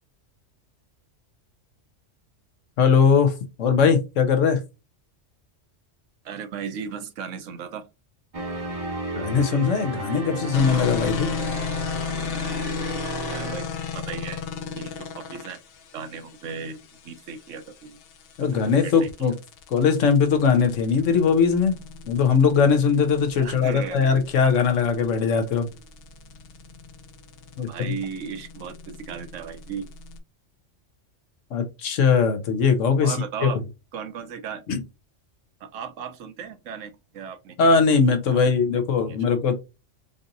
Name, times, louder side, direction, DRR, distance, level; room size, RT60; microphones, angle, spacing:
voice 1, 2.8-3.3 3.6-4.6 9.1-11.3 18.4-19.3 19.7-21.7 22.1-25.7 27.6-27.9 31.5-33.2 33.4-33.5 34.7-34.8 37.6-39.5, left 6 dB, 85° left, 1.2 m, -20 dB
voice 2, 6.2-7.9 13.3-13.7 13.9-14.4 14.7-15.6 15.9-18.0 18.8-19.3 23.4-24.1 27.7-29.9 33.0-33.6 33.9-34.6 35.6-37.6 39.1-39.2, right 7 dB, 80° right, 1.1 m, -36 dB
sound 1, 8.3-13.6, right 2 dB, 35° right, 0.7 m, -33 dB
sound 2, 10.5-30.2, left 5 dB, 60° left, 0.7 m, -35 dB
5.0 x 2.7 x 2.5 m
omnidirectional pair, 1.3 m